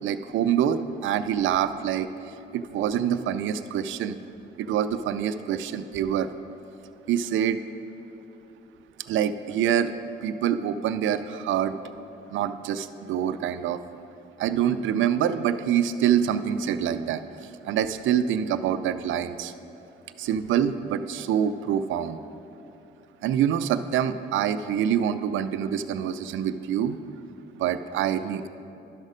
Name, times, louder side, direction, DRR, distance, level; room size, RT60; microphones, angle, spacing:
voice 1, 0.0-2.1 2.5-4.2 4.6-6.3 7.1-7.6 9.1-9.9 10.2-11.7 12.3-13.8 14.4-19.5 20.2-22.2 23.2-27.0 27.6-28.5, right 9 dB, 75° right, 12 dB, 0.5 m, -26 dB
11.5 x 6.5 x 5.0 m, 2.8 s
cardioid pair, 90°, 20 cm